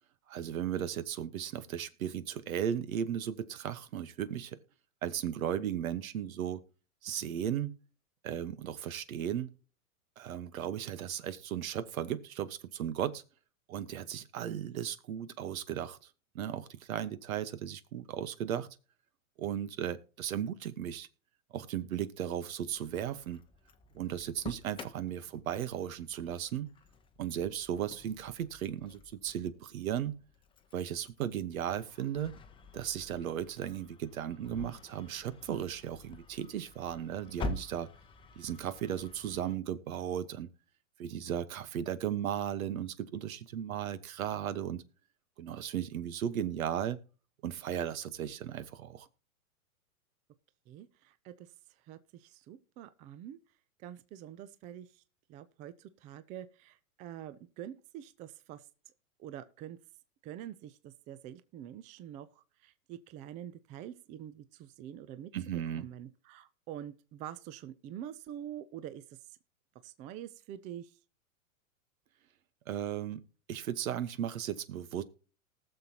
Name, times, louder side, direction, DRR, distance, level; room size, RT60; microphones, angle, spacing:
voice 1, 0.3-4.6 5.0-6.6 7.0-7.7 8.2-9.5 10.2-13.2 13.7-16.0 16.3-18.7 19.4-21.1 21.5-23.4 23.9-26.7 27.2-30.2 30.7-32.3 32.7-37.9 38.4-40.5 41.0-44.8 45.4-47.0 47.4-49.1 65.3-65.9 72.7-73.2 73.5-75.0, right 10 dB, 75° right, 1.3 m, -36 dB
Engine starting, 22.6-39.5, left 3 dB, 10° left, 0.7 m, -48 dB
voice 2, 50.7-51.5 51.9-53.4 53.8-55.0 55.3-58.6 59.2-59.8 60.2-69.2 69.8-71.0, right 11 dB, 20° right, 0.4 m, -46 dB
19.5 x 6.9 x 2.9 m
hypercardioid pair, 125°, 42 cm